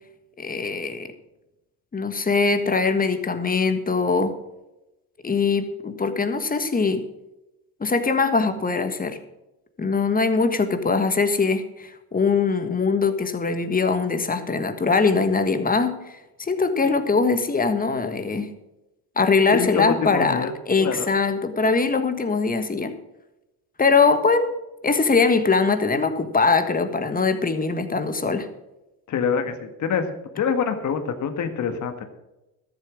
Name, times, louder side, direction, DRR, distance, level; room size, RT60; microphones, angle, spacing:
voice 1, 0.4-1.1 1.9-4.4 5.2-7.0 7.8-9.2 9.8-18.5 19.2-23.0 23.8-24.5 24.8-28.5, left 4 dB, 20° left, 9 dB, 1.5 m, -22 dB
voice 2, 19.5-20.5 20.8-21.1 29.1-30.1 30.3-32.0, left 6 dB, 45° left, 7 dB, 1.7 m, -25 dB
13.5 x 7.7 x 6.2 m, 0.97 s
supercardioid pair, 85°, 41 cm